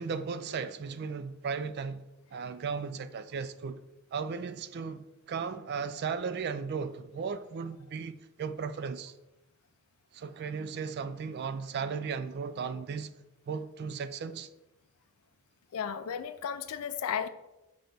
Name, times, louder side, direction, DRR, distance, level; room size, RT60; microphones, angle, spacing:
voice 1, 0.0-2.0 2.3-3.8 4.1-9.1 10.1-13.1 13.5-14.5, right 5 dB, 50° right, 0.3 m, -36 dB
voice 2, 15.7-17.3, left 8 dB, 75° left, 0.4 m, -34 dB
5.8 x 5.2 x 3.5 m
head